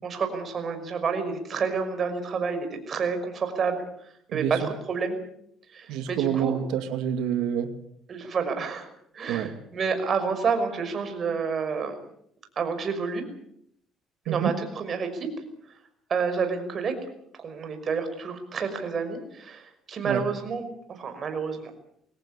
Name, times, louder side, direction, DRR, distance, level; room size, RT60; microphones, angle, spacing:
voice 1, 0.0-3.8 4.3-5.2 5.7-6.6 8.1-8.9 9.1-12.0 12.6-13.2 14.3-15.3 16.1-16.9 17.4-21.7, right 5 dB, 45° right, 7 dB, 5.7 m, -29 dB
voice 2, 4.3-4.7 5.9-7.7 9.3-9.5 14.3-14.6 20.0-20.3, right 9 dB, 85° right, 9 dB, 2.3 m, -27 dB
23.0 x 18.0 x 8.4 m, 0.71 s
cardioid pair, 105°, 0 cm